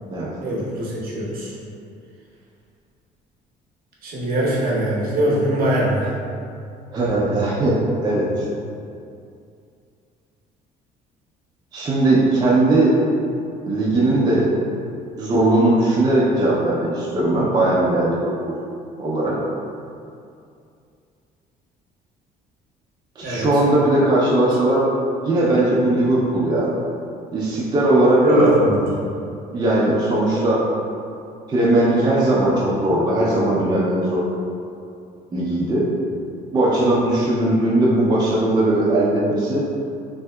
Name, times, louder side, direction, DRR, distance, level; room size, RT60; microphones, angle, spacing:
voice 1, 0.4-1.5 4.0-6.1 23.2-23.5 28.2-29.1, right 1 dB, 60° right, -5 dB, 0.8 m, -21 dB
voice 2, 6.9-8.3 11.7-13.0 13.6-14.5 15.2-18.6 19.0-19.4 23.2-24.9 25.2-26.7 27.3-28.6 29.5-30.6 31.5-34.3 35.3-35.9 36.5-39.7, right 1 dB, 25° right, -6 dB, 0.5 m, -19 dB
3.4 x 2.7 x 2.2 m, 2.4 s
cardioid pair, 110°, 17 cm